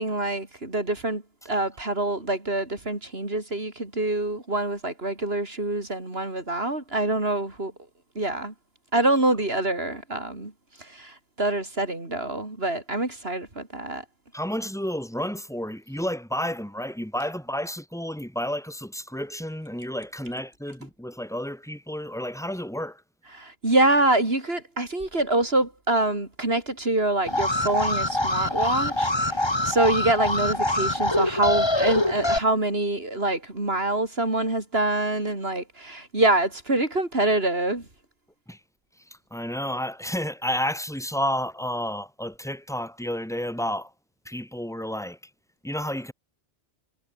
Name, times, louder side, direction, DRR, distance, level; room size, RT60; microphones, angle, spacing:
voice 1, 0.0-7.7 8.1-8.5 8.9-10.5 10.8-14.0 23.3-37.8, right 2 dB, 65° right, 4.6 m, -25 dB
voice 2, 14.3-23.0 38.5-38.6 39.3-43.9 44.3-45.2 45.6-46.1, equal, 5° left, 5.6 m, -31 dB
Alarm, 27.3-32.4, left 1 dB, 25° left, 2.8 m, -24 dB
omnidirectional pair, 1.1 m